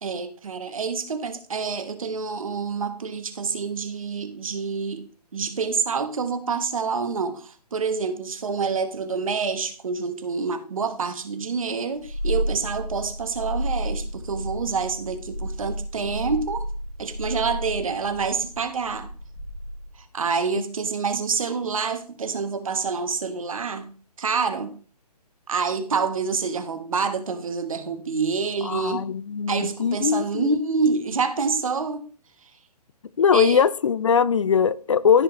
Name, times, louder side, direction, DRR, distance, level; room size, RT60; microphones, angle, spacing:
voice 1, 0.0-5.0 5.3-16.7 17.0-19.1 20.1-23.9 24.2-24.7 25.5-29.0 29.5-32.1 33.3-33.6, right 5 dB, 55° right, 1.4 m, -27 dB
Purr, 11.9-20.0, equal, 65° left, 4.8 m, -32 dB
voice 2, 28.6-30.6 33.2-35.2, left 7 dB, 50° left, 0.4 m, -21 dB
14.0 x 5.1 x 3.0 m
figure-of-eight pair, 135°, 21 cm